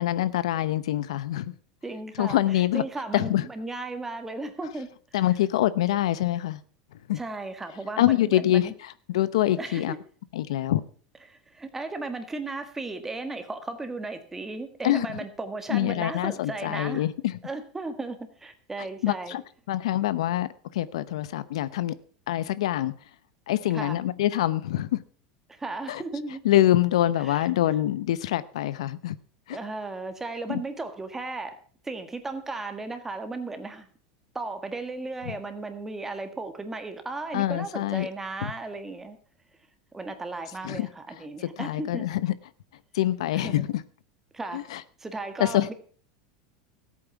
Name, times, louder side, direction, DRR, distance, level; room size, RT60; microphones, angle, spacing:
voice 1, 0.0-1.5 2.2-2.8 3.1-3.5 5.1-6.6 7.1-7.2 8.0-9.9 10.3-10.8 14.8-15.1 15.7-17.3 19.0-19.4 19.7-22.0 22.3-22.9 23.5-25.0 25.9-26.0 26.4-29.2 29.5-29.6 30.5-30.6 37.3-38.1 38.4-38.5 40.6-40.9 41.6-42.3 42.9-43.8 44.5-44.8 45.4-45.7, left 13 dB, 85° left, 0.7 m, -25 dB
voice 2, 1.8-4.9 5.2-5.3 7.1-8.7 9.6-10.0 11.3-17.1 17.4-19.4 23.7-24.0 25.5-26.4 27.2-27.5 29.5-31.6 31.8-33.9 34.3-39.2 39.9-42.0 43.3-43.6 44.3-44.6 45.0-45.7, right 3 dB, 10° right, 1.6 m, -35 dB
14.0 x 8.6 x 5.8 m
supercardioid pair, 135°, 3 cm